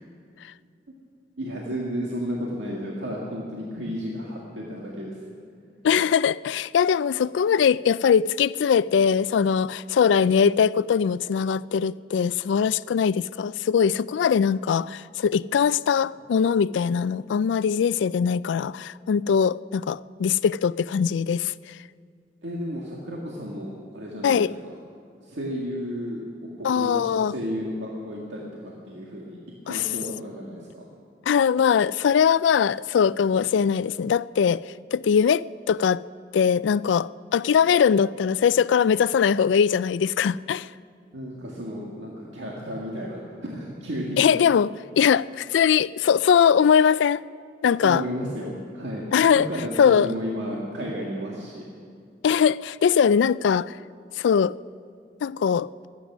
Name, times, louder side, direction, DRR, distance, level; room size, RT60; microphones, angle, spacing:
voice 1, 1.4-5.2 22.4-24.7 25.2-26.2 26.6-29.4 29.6-30.8 41.1-44.2 47.8-51.7, equal, 85° right, 1.9 m, -33 dB
voice 2, 5.8-21.8 24.2-24.5 26.6-27.3 29.7-29.9 31.3-36.0 36.3-40.7 44.2-47.2 47.6-48.0 49.1-49.5 49.8-50.1 52.2-53.8 54.2-54.5 55.2-55.7, left 7 dB, 90° left, 0.3 m, -21 dB
23.5 x 9.8 x 6.1 m
head